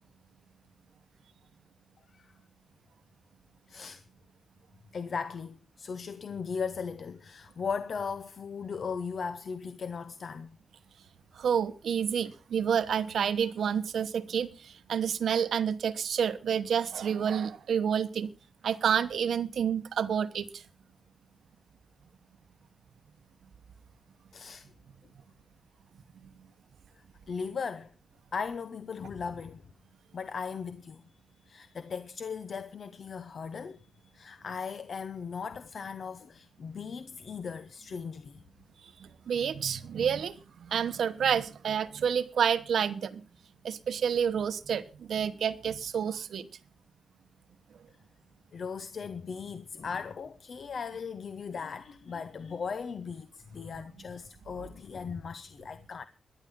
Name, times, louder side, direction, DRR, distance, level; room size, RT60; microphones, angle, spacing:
voice 1, 3.7-4.0 4.9-10.6 24.3-24.7 26.9-27.9 28.3-29.6 30.1-31.1 31.4-38.4 48.5-56.1, left 5 dB, 60° left, 0.7 m, -38 dB
voice 2, 11.3-18.3 18.6-20.6 26.2-26.3 39.0-43.2 43.6-46.5, right 7 dB, 85° right, 1.0 m, -29 dB
18.5 x 11.5 x 3.7 m
wide cardioid pair, 120°, 0 cm